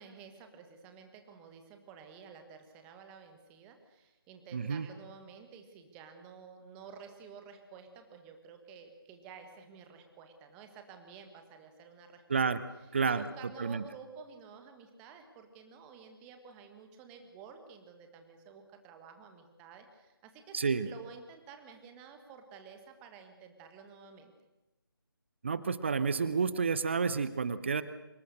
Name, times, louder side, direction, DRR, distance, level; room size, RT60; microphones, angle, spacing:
voice 1, 0.0-12.2 12.8-24.3, right 6 dB, 10° right, 6 dB, 1.6 m, -52 dB
voice 2, 4.5-4.9 12.3-12.6 12.9-13.2 13.6-13.8 20.5-20.9 25.4-27.8, right 5 dB, 30° right, 14 dB, 1.0 m, -30 dB
26.0 x 21.5 x 6.5 m, 1.0 s
figure-of-eight pair, 155°, 13 cm